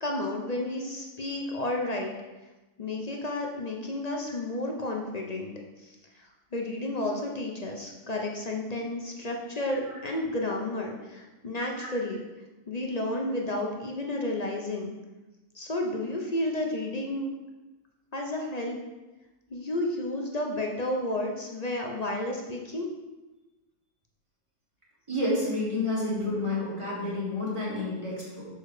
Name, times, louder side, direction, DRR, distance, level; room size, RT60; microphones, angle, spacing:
voice 1, 0.0-2.2 2.8-5.5 5.8-12.2 12.7-15.0 15.5-17.3 18.1-18.8 19.5-22.9, left 1 dB, 40° left, 0 dB, 0.6 m, -32 dB
voice 2, 25.1-28.5, left 2 dB, 20° right, -6 dB, 2.2 m, -29 dB
6.6 x 4.7 x 4.8 m, 1.1 s
omnidirectional pair, 1.5 m